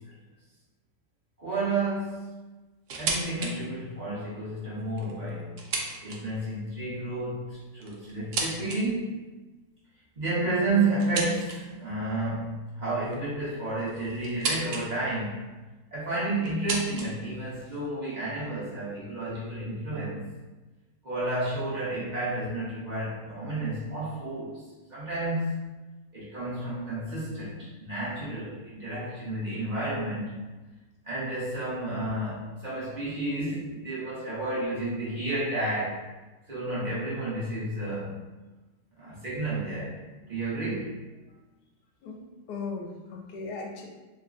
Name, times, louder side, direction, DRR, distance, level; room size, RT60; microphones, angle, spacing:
voice 1, 1.4-2.3 3.0-5.5 6.0-9.2 10.2-15.5 15.9-20.3 21.0-24.6 24.9-25.7 26.1-30.4 31.0-36.0 36.5-38.2 39.0-40.0 40.3-41.0, right 2 dB, 30° right, -10 dB, 1.0 m, -31 dB
sound 1, 2.9-3.5 3.9-4.0 4.8-6.5 7.5-8.8 11.0-11.8 13.1-14.9 15.1-15.7 16.4-17.9, right 4 dB, 75° right, 1.1 m, -34 dB
voice 2, 42.0-43.9, left 4 dB, 90° left, 0 dB, 1.2 m, -38 dB
3.1 x 2.2 x 3.8 m, 1.2 s
omnidirectional pair, 1.7 m